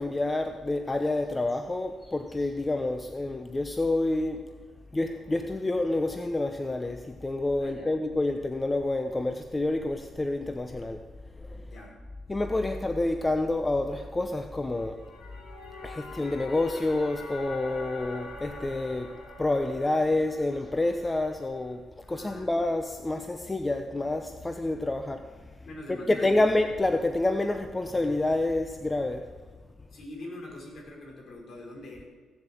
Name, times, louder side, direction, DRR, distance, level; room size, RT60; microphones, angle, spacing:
voice 1, 0.0-4.4 4.9-11.0 11.4-11.6 12.3-15.0 15.8-21.8 22.1-25.3 25.9-29.3, left 2 dB, 20° left, 7 dB, 0.8 m, -28 dB
voice 2, 7.6-8.0 11.6-11.9 22.0-22.5 25.6-26.5 29.9-32.0, left 1 dB, 55° left, -1 dB, 5.1 m, -43 dB
sound 1, 14.8-21.7, left 1 dB, 80° left, 3.6 m, -45 dB
16.0 x 7.7 x 7.6 m, 1.4 s
cardioid pair, 90°, 0 cm